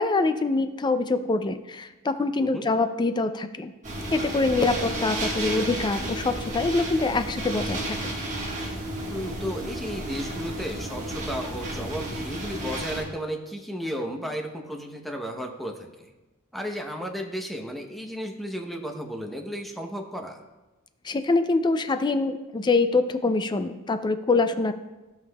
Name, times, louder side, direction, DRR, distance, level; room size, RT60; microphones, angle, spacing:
voice 1, 0.0-3.7 4.1-8.2 21.0-24.7, left 3 dB, 20° left, 10 dB, 0.3 m, -25 dB
sound 1, 3.8-13.0, right 1 dB, 35° right, 1.5 m, -32 dB
voice 2, 9.1-16.1 16.5-20.4, equal, ahead, 2 dB, 0.8 m, -34 dB
15.5 x 5.8 x 2.3 m, 1.1 s
head